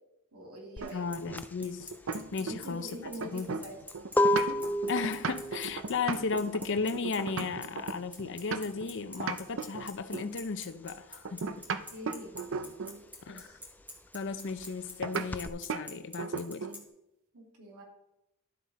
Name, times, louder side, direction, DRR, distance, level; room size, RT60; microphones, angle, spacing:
voice 1, 0.3-1.0 2.4-3.8 4.2-4.6 11.9-12.4 13.3-13.6 17.3-17.8, right 1 dB, 90° right, -2 dB, 2.6 m, -44 dB
sound 1, 0.8-11.0 11.3-15.5, left 1 dB, 10° left, 0.3 m, -33 dB
sound 2, 0.8-2.8 3.1-8.9 9.2-10.4 11.2-13.0 15.0-15.3 15.7-15.9 16.2-16.8, right 5 dB, 60° right, 0.6 m, -36 dB
voice 2, 0.9-2.9 3.3-3.6 4.9-11.6 13.3-13.6 14.1-16.7, left 4 dB, 60° left, 11 dB, 0.6 m, -35 dB
Bicycle, 0.9-16.8, left 1 dB, 5° right, 1.9 m, -45 dB
11.5 x 7.5 x 4.2 m, 0.88 s
head